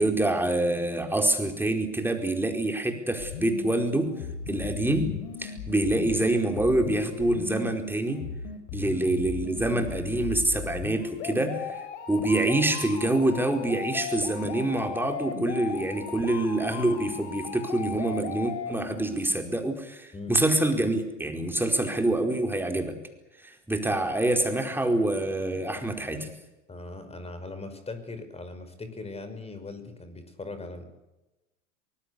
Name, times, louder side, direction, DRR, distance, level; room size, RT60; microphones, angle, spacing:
voice 1, 0.0-4.1 4.5-5.1 5.4-8.2 8.7-23.0 23.4-26.3, right 1 dB, 5° right, 4 dB, 4.6 m, -26 dB
sound 1, 3.2-19.2, left 7 dB, 65° left, 4.3 m, -37 dB
voice 2, 26.7-30.8, left 3 dB, 15° left, 10 dB, 5.5 m, -40 dB
24.0 x 21.0 x 8.4 m, 0.99 s
hypercardioid pair, 90°, 37 cm